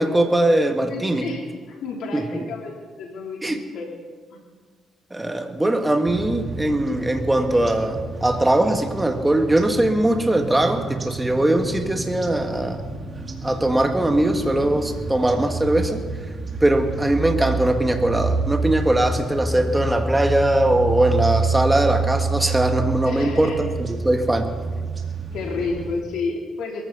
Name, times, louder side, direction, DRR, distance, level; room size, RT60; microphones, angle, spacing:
voice 1, 0.0-1.3 2.1-2.5 3.4-3.6 5.1-12.8 13.4-16.0 16.6-24.5, right 1 dB, 10° right, 5 dB, 1.8 m, -21 dB
voice 2, 0.9-1.4 1.7-3.9 4.3-4.4 23.0-23.6 25.3-26.8, left 4 dB, 80° left, -1 dB, 3.3 m, -30 dB
sound 1, 6.0-26.0, right 3 dB, 35° right, 2.0 m, -28 dB
22.5 x 14.5 x 4.1 m, 1.5 s
cardioid pair, 90°, 0 cm